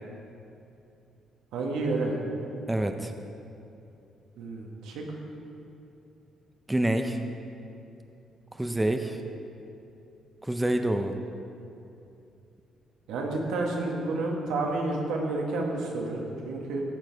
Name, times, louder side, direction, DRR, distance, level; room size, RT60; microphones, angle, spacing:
voice 1, 1.5-2.2 4.4-5.0 13.1-16.8, right 2 dB, 90° right, -1 dB, 1.4 m, -30 dB
voice 2, 2.7-3.1 6.7-7.2 8.6-9.2 10.4-11.2, right 1 dB, 10° right, 6 dB, 0.5 m, -27 dB
14.0 x 4.8 x 4.6 m, 2.7 s
cardioid pair, 90°, 0 cm